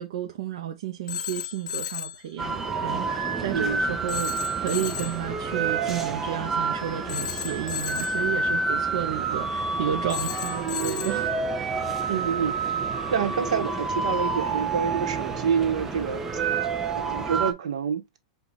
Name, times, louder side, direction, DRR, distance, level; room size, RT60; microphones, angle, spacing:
voice 1, 0.0-11.3 12.0-12.1, right 11 dB, 55° right, 0.6 m, -32 dB
Telephone, 1.1-2.2 4.1-5.2 7.1-8.3 10.1-11.3, left 10 dB, 80° left, 0.5 m, -34 dB
sound 1, 2.4-17.5, right 4 dB, 5° right, 0.4 m, -28 dB
voice 2, 3.5-3.8 12.1-12.5 13.1-16.2 16.9-18.2, right 7 dB, 70° right, 1.0 m, -27 dB
4.8 x 2.3 x 3.9 m
supercardioid pair, 175°, 4 cm